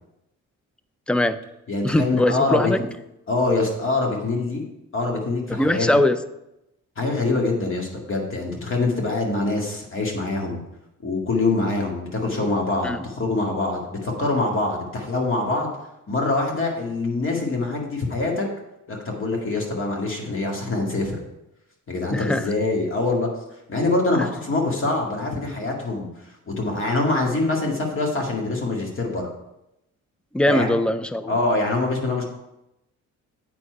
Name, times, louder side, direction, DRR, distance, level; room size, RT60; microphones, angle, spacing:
voice 1, 1.1-1.4 1.8-2.8 5.6-6.2 12.8-13.1 22.1-22.5 24.2-24.3 30.3-31.3, left 1 dB, 5° left, 13 dB, 0.3 m, -21 dB
voice 2, 1.7-2.7 3.3-4.6 4.9-5.9 7.0-10.6 11.0-15.7 16.1-18.5 18.9-21.2 21.9-23.3 23.7-29.3 30.5-30.8 31.3-32.2, left 2 dB, 45° left, 0 dB, 2.1 m, -24 dB
8.5 x 4.4 x 4.7 m, 0.89 s
cardioid pair, 90°, 30 cm